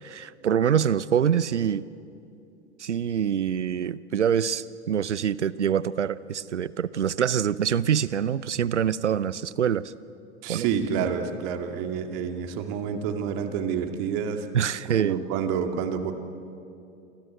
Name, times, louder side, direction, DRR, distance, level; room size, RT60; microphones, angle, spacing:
voice 1, 0.0-1.8 2.8-9.9 10.5-10.7 11.0-11.1 14.5-15.2, right 8 dB, 85° right, 19 dB, 0.8 m, -25 dB
voice 2, 10.4-14.5 14.9-16.1, right 7 dB, 50° right, 6 dB, 2.4 m, -28 dB
29.0 x 25.0 x 7.8 m, 2.7 s
figure-of-eight pair, 90°, 34 cm